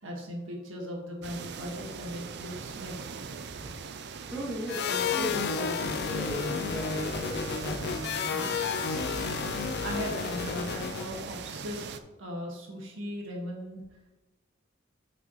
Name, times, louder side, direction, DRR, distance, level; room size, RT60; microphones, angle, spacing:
voice 1, 0.0-3.2 3.6-4.0 9.8-11.8 12.2-13.8, equal, 80° right, 0 dB, 1.6 m, -38 dB
sound 1, 1.2-12.0, right 5 dB, 60° right, 0.5 m, -41 dB
voice 2, 4.2-8.6, equal, 5° right, -6 dB, 2.1 m, -36 dB
sound 2, 4.7-11.2, left 6 dB, 55° left, 0.4 m, -32 dB
8.5 x 5.8 x 3.0 m, 1.1 s
head